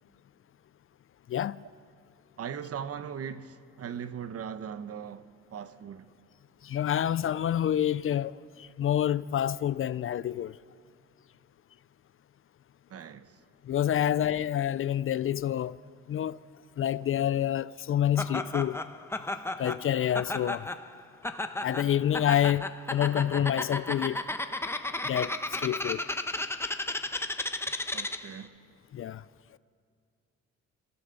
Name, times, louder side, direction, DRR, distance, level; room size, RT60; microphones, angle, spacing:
voice 1, 2.4-6.1 12.9-13.3 14.0-14.1 27.9-28.5, right 8 dB, 50° right, 0.9 m, -39 dB
voice 2, 6.6-8.3 8.8-10.5 13.7-15.7 16.1-16.4 16.8-18.8 19.6-20.7 21.6-24.2 25.0-25.3 25.6-26.0 28.9-29.2, left 10 dB, 45° left, 0.4 m, -27 dB
Laughter, 18.2-28.4, left 2 dB, 10° left, 0.9 m, -34 dB
27.5 x 14.5 x 6.9 m
cardioid pair, 90°, 30 cm